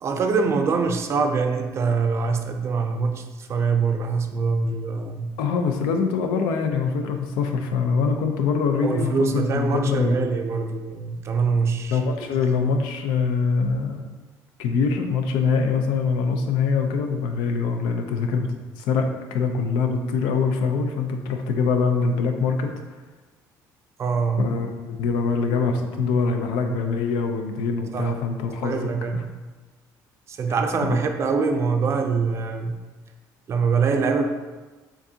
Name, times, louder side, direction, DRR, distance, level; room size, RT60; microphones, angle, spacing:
voice 1, 0.0-5.4 8.8-12.0 24.0-24.5 27.9-28.1 28.6-29.3 30.3-32.8 33.5-34.2, right 5 dB, 40° right, 5 dB, 0.4 m, -24 dB
voice 2, 5.4-10.3 11.9-14.1 14.6-22.7 24.4-24.7 25.0-28.9 29.1-29.2 30.9-31.0, left 5 dB, 90° left, 4 dB, 0.5 m, -24 dB
6.9 x 2.6 x 2.7 m, 1.3 s
cardioid pair, 130°, 7 cm